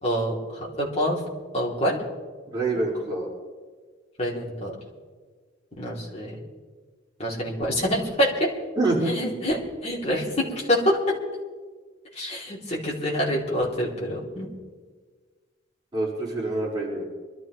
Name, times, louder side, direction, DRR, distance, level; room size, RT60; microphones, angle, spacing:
voice 1, 0.0-1.2 1.5-2.0 4.2-4.8 5.8-6.4 7.2-8.5 9.1-11.2 12.1-14.5, equal, 30° left, -4 dB, 3.0 m, -26 dB
voice 2, 2.5-3.3 8.8-9.1 15.9-17.1, right 2 dB, 20° right, -6 dB, 4.9 m, -26 dB
25.0 x 12.5 x 3.2 m, 1.5 s
head